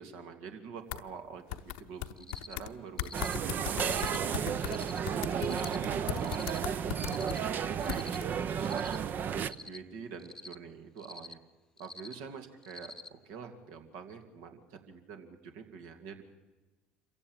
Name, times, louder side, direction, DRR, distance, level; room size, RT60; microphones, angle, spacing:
voice 1, 0.0-3.2 3.6-4.8 5.2-5.8 6.2-6.8 7.1-8.9 9.4-11.4 11.8-16.2, right 6 dB, 70° right, 5 dB, 2.5 m, -46 dB
sound 1, 0.9-1.0 1.5-2.7 3.0-7.4 7.9-8.2, left 14 dB, 75° left, 0.9 m, -38 dB
Cricket, 2.2-2.5 3.0-3.3 3.8-4.2 4.6-5.0 5.4-5.8 6.2-6.6 7.0-7.4 7.8-8.2 8.6-9.0 9.4-9.8 10.2-10.5 11.0-11.3 11.8-12.1 12.6-13.1, left 2 dB, 10° left, 1.0 m, -47 dB
sound 2, 3.1-9.5, right 7 dB, 45° right, 0.8 m, -33 dB
27.0 x 15.5 x 8.9 m, 1.2 s
hypercardioid pair, 75°, 4 cm